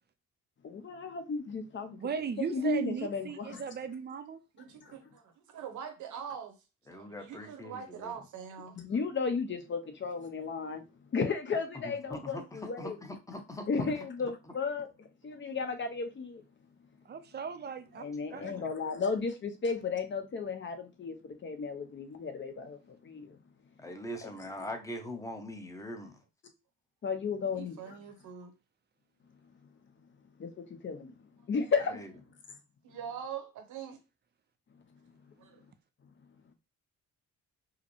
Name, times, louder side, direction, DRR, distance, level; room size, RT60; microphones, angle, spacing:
voice 1, 0.6-2.0 2.4-3.6 4.8-4.9 8.6-10.9 11.1-13.0 13.7-16.4 18.0-23.4 27.0-28.0 30.4-31.2 31.5-32.0 32.5-32.6, left 4 dB, 40° left, 0.8 m, -34 dB
voice 2, 2.0-4.4 17.1-18.1 18.3-18.5, right 6 dB, 35° right, 0.5 m, -37 dB
voice 3, 4.5-6.6 6.9-8.8 15.2-15.4 27.5-28.5 32.8-34.0 35.4-35.6, right 7 dB, 75° right, 1.0 m, -43 dB
voice 4, 6.9-8.1 11.8-14.0 18.3-18.7 23.8-26.2 31.9-32.1, left 1 dB, 10° left, 0.8 m, -42 dB
4.8 x 2.1 x 3.1 m
cardioid pair, 90°, 30 cm